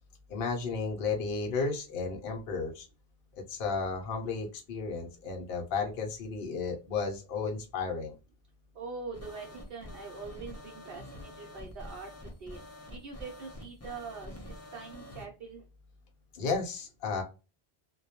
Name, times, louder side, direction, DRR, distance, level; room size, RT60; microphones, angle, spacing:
voice 1, 0.3-2.9 3.5-8.1 16.3-17.2, left 4 dB, 65° left, 2 dB, 0.8 m, -33 dB
voice 2, 8.7-12.6 12.9-14.3 14.7-15.6, right 4 dB, 65° right, -1 dB, 0.8 m, -43 dB
sound 1, 9.1-15.3, left 1 dB, 25° left, 0.4 m, -47 dB
2.2 x 2.1 x 2.7 m, 0.31 s
omnidirectional pair, 1.1 m